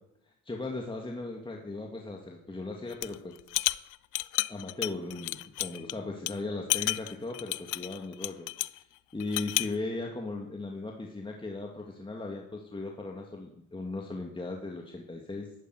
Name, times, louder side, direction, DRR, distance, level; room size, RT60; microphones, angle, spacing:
voice 1, 0.4-3.4 4.5-15.5, left 2 dB, 15° left, 0 dB, 2.2 m, -37 dB
sound 1, 2.9-3.1 3.5-5.9 6.3-6.4 6.7-8.8 9.2-9.7, left 18 dB, 90° left, 0.5 m, -31 dB
12.5 x 11.0 x 9.6 m, 0.81 s
cardioid pair, 90°, 30 cm